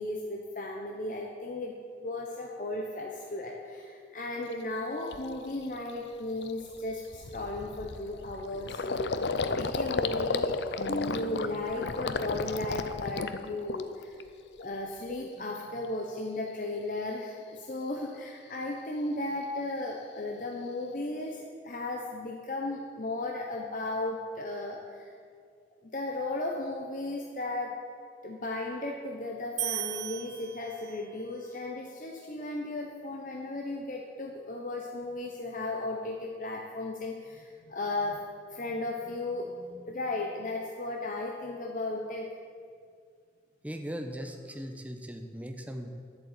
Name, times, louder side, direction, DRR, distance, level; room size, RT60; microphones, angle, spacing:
voice 1, 0.0-9.3 9.6-14.2 14.6-25.1 25.9-27.8 28.2-38.2 38.5-42.3, left 2 dB, 45° left, 0 dB, 1.0 m, -35 dB
Gurgling, 4.5-4.6 5.1-5.4 5.7-5.9 6.2-14.2 14.5-15.2, left 4 dB, 80° left, 0.6 m, -33 dB
sound 1, 29.6-31.2, right 13 dB, 85° right, 0.9 m, -36 dB
voice 2, 43.6-45.9, equal, 10° right, 4 dB, 0.9 m, -39 dB
10.5 x 8.4 x 8.2 m, 2.2 s
head